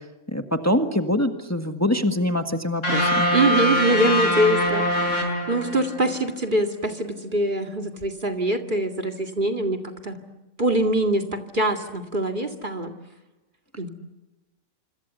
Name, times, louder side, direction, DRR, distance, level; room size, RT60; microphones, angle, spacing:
voice 1, 0.3-3.3, left 1 dB, 10° left, 6 dB, 1.6 m, -24 dB
sound 1, 2.8-6.1, left 1 dB, 65° left, 6.0 m, -23 dB
voice 2, 3.3-10.2 10.6-12.9 13.8-13.9, right 1 dB, 40° right, 5 dB, 2.3 m, -24 dB
26.5 x 26.0 x 8.1 m, 1.1 s
omnidirectional pair, 1.4 m